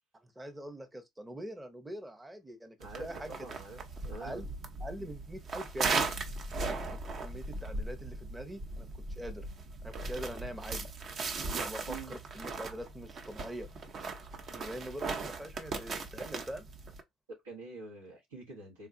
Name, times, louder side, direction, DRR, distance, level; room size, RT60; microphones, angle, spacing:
voice 1, 0.2-3.5 4.2-4.5 4.8-5.9 6.7-8.9 9.2-9.5 9.8-10.9 11.5-13.7 14.5-16.7, equal, 15° right, 0.8 m, -43 dB
sound 1, 2.8-17.0, right 3 dB, 50° right, 0.7 m, -38 dB
voice 2, 2.8-4.4 11.9-12.1 17.3-18.9, right 3 dB, 90° right, 1.2 m, -46 dB
3.7 x 2.3 x 2.6 m
hypercardioid pair, 60°, 0 cm